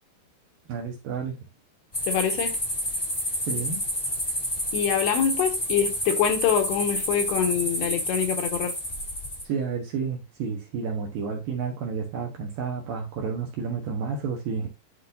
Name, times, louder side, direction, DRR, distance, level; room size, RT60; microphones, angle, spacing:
voice 1, 0.7-1.4 3.4-3.8 9.4-14.7, right 5 dB, 70° right, 2.3 m, -30 dB
sound 1, 1.9-9.4, equal, 20° left, 1.1 m, -29 dB
voice 2, 2.1-2.6 4.7-8.7, left 8 dB, 75° left, 2.9 m, -25 dB
11.5 x 3.9 x 2.6 m
omnidirectional pair, 5.2 m